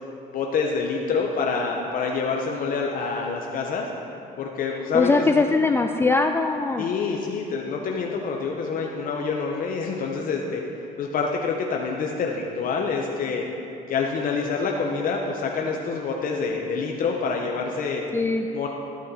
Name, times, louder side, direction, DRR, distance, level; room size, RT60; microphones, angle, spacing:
voice 1, 0.3-3.8 4.4-5.4 6.8-10.6 11.0-13.4 13.9-18.0 18.5-18.7, left 5 dB, 55° left, 0 dB, 0.8 m, -27 dB
voice 2, 4.9-6.9 18.1-18.5, left 3 dB, 15° left, 4 dB, 0.3 m, -21 dB
13.0 x 6.3 x 4.1 m, 2.8 s
cardioid pair, 110°, 17 cm